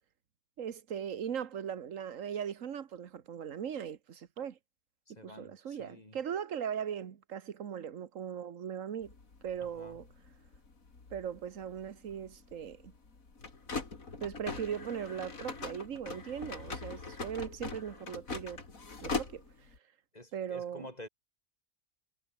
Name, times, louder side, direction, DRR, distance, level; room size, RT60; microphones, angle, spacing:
voice 1, 0.6-4.6 5.1-9.1 9.4-10.0 11.1-12.9 14.2-18.6 19.0-19.4 20.3-20.8, right 8 dB, 70° right, 1.5 m, -39 dB
voice 2, 5.1-6.2 9.6-10.0 20.1-21.1, left 1 dB, 30° left, 4.1 m, -49 dB
sound 1, 9.0-19.8, left 4 dB, 75° left, 3.4 m, -42 dB
omnidirectional pair, 1.4 m